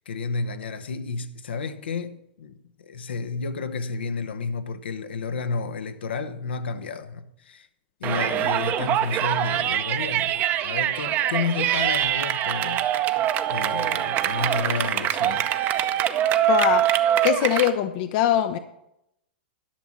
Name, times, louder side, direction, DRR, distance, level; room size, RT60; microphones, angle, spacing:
voice 1, 0.0-7.7 8.0-15.5, left 4 dB, 75° left, 1.0 m, -31 dB
Yell, 8.0-17.7, right 11 dB, 35° right, 0.7 m, -24 dB
voice 2, 16.5-16.8 17.2-18.6, left 11 dB, 50° left, 0.7 m, -22 dB
11.5 x 6.3 x 7.2 m
hypercardioid pair, 110°, 6 cm